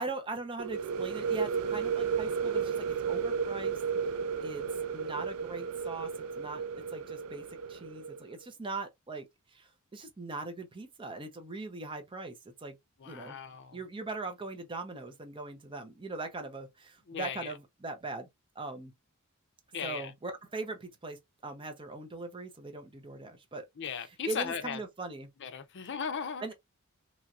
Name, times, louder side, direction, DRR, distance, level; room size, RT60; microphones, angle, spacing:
voice 1, 0.0-3.8 4.4-4.7 4.9-6.1 6.4-6.6 6.9-12.8 13.0-13.4 13.7-18.3 18.6-18.9 19.8-23.7 24.3-25.3 26.4-26.5, right 3 dB, 25° right, 0.6 m, -40 dB
sound 1, 0.6-8.2, right 6 dB, 75° right, 0.4 m, -33 dB
voice 2, 13.0-13.8 17.1-17.5 19.7-20.1 23.8-24.8 25.4-26.4, left 7 dB, 55° left, 0.5 m, -37 dB
3.0 x 2.8 x 2.3 m
head